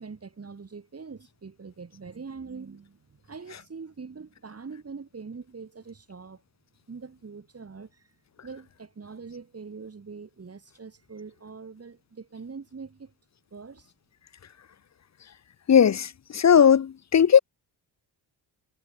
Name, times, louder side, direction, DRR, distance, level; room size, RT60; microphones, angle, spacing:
voice 1, 0.0-6.4 6.9-8.1 8.4-13.1 13.5-13.9, right 5 dB, 35° right, 7.2 m, -43 dB
voice 2, 15.7-17.4, left 8 dB, 40° left, 1.0 m, -18 dB
cardioid pair, 110°, 44 cm